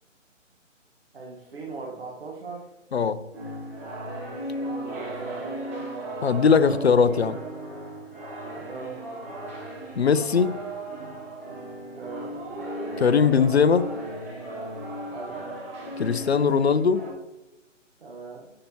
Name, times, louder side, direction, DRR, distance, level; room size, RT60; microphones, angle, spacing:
voice 1, 1.1-2.7 4.6-5.9 8.5-9.1 12.0-12.4 15.0-15.4 18.0-18.5, right 4 dB, 50° right, -2 dB, 1.4 m, -40 dB
voice 2, 2.9-3.2 6.2-7.4 10.0-10.5 13.0-13.8 16.0-17.0, left 6 dB, 55° left, 15 dB, 0.5 m, -20 dB
sound 1, 3.3-17.1, right 1 dB, 10° right, 0.8 m, -36 dB
9.8 x 5.7 x 2.9 m, 0.99 s
figure-of-eight pair, 150°, 38 cm